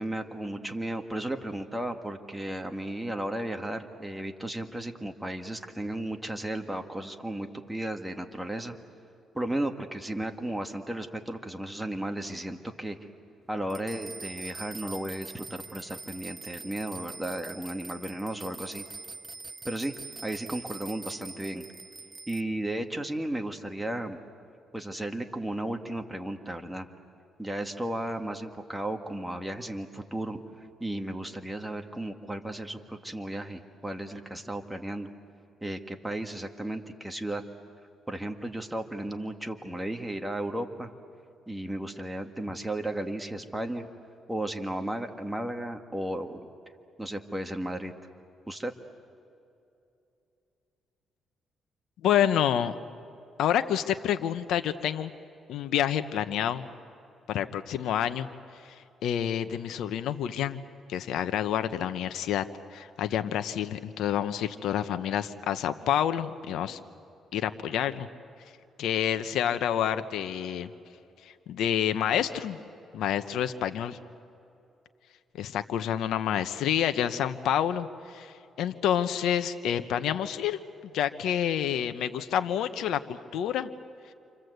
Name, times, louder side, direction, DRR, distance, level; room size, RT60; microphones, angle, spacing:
voice 1, 0.0-8.8 9.3-13.0 13.5-18.8 19.6-19.9 20.2-21.6 22.3-24.2 24.7-26.9 27.4-30.4 30.8-35.1 35.6-37.4 38.1-40.9 41.5-43.9 44.3-46.4 47.0-47.9 48.5-48.7, right 1 dB, 5° right, 4 dB, 1.9 m, -34 dB
sound 1, 13.7-22.4, right 4 dB, 25° right, 0.6 m, -43 dB
voice 2, 52.0-52.7 53.4-55.1 55.5-56.7 57.3-58.3 59.0-60.6 60.9-62.4 62.7-66.8 67.3-68.1 68.8-70.7 71.5-72.6 72.9-74.0 75.3-80.6 80.9-83.7, left 10 dB, 80° left, 10 dB, 1.0 m, -28 dB
29.0 x 25.5 x 8.0 m, 2.7 s
cardioid pair, 90°, 0 cm